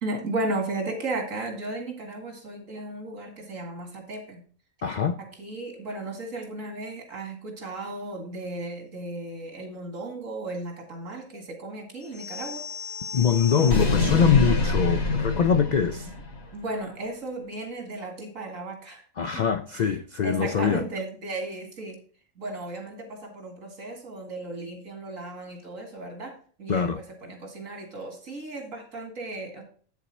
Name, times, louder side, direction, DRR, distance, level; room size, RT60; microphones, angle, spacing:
voice 1, 0.0-4.4 5.2-12.6 13.5-14.4 14.7-15.4 16.5-19.4 19.7-19.8 20.2-22.0 22.4-26.9 27.2-29.6, right 2 dB, 80° right, 2.5 m, -35 dB
voice 2, 4.8-5.2 13.1-16.1 19.2-20.8 26.7-27.0, left 7 dB, 90° left, 0.3 m, -23 dB
sound 1, 12.1-16.5, left 3 dB, 55° left, 1.7 m, -27 dB
8.2 x 7.2 x 4.2 m
omnidirectional pair, 1.4 m